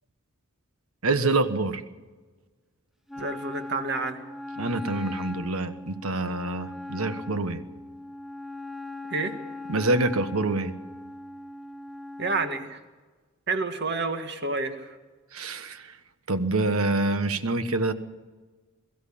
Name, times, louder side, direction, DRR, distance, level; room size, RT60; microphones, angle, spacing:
voice 1, 1.0-1.8 4.6-7.6 9.7-10.7 15.3-16.0 16.3-17.9, right 2 dB, 75° right, 11 dB, 1.4 m, -26 dB
Wind instrument woodwind instrument, 3.1-12.7, left 2 dB, ahead, 0.6 m, -39 dB
voice 2, 3.2-4.2 9.1-9.4 12.2-12.8 13.5-15.0, right 3 dB, 50° right, 7 dB, 1.8 m, -29 dB
22.5 x 14.0 x 8.6 m, 1.3 s
head